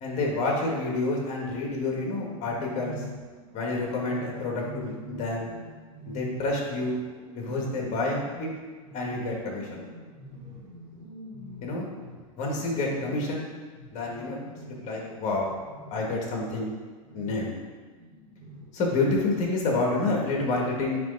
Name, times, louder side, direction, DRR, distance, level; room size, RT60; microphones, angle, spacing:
voice 1, 0.0-3.0 3.5-5.5 6.1-7.0 7.3-8.5 8.9-9.8 11.6-11.9 12.4-13.4 13.9-14.4 14.7-15.5 15.9-16.7 17.1-17.5 18.7-21.0, left 2 dB, 40° left, -1 dB, 1.9 m, -28 dB
sound 1, 1.5-16.3 17.0-18.9, equal, 60° right, 1.7 m, -45 dB
8.9 x 3.3 x 4.0 m, 1.5 s
hypercardioid pair, 120°, 18 cm